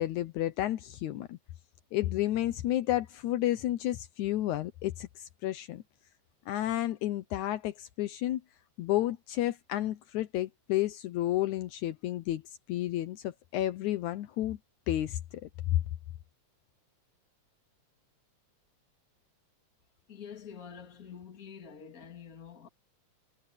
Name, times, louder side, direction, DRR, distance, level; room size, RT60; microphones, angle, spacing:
voice 1, 0.0-1.4 1.9-5.8 6.5-8.4 8.8-14.6 14.9-15.2, left 14 dB, 80° left, 2.2 m, -31 dB
voice 2, 20.1-22.7, left 7 dB, 30° left, 2.7 m, -47 dB
omnidirectional pair, 3.4 m